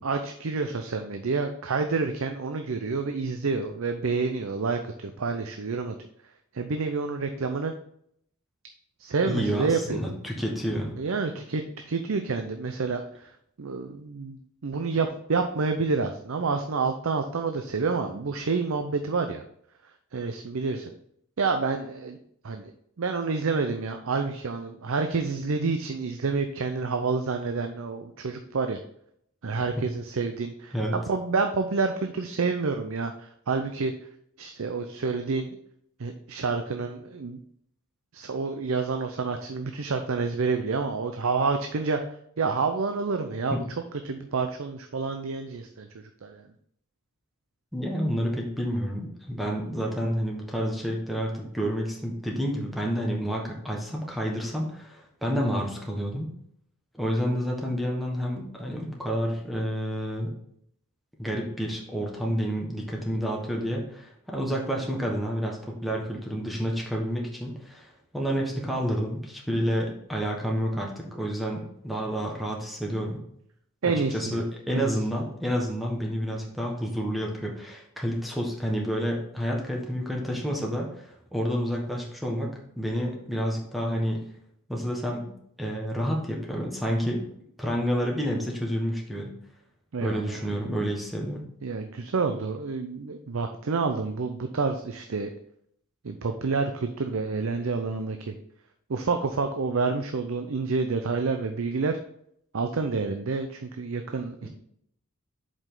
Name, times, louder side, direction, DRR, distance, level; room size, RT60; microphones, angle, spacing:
voice 1, 0.0-6.0 6.5-7.7 9.0-10.0 11.0-13.3 13.6-19.4 20.1-20.9 21.4-22.2 22.4-22.7 23.0-28.8 29.4-33.9 34.4-35.6 36.0-37.4 38.1-43.6 44.0-46.4 73.8-74.4 74.7-74.9 89.9-90.4 91.6-95.3 96.0-98.3 98.9-102.0 102.5-104.5, right 4 dB, 70° right, 6 dB, 0.6 m, -28 dB
voice 2, 9.2-10.9 29.8-29.9 30.7-31.0 43.5-43.6 47.7-56.3 57.0-60.3 61.2-73.2 73.8-84.2 84.7-85.3 85.6-87.2 87.6-89.3 90.0-91.4 104.4-104.5, equal, ahead, -1 dB, 1.4 m, -29 dB
7.6 x 5.2 x 3.8 m, 0.69 s
head